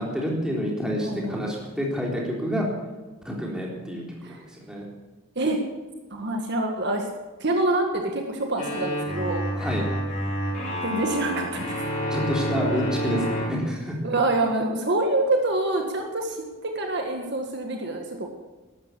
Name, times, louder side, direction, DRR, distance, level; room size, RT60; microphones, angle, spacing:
voice 1, 0.0-2.7 3.2-4.9 9.6-9.8 12.1-14.0, equal, 5° right, -3 dB, 3.8 m, -28 dB
voice 2, 1.0-1.6 4.2-4.4 5.4-5.6 6.1-7.1 7.4-9.4 10.8-11.8 14.0-18.3, right 2 dB, 55° right, 2 dB, 1.8 m, -26 dB
sound 1, 8.6-13.5, equal, 40° left, 5.6 m, -28 dB
12.5 x 12.5 x 8.4 m, 1.2 s
head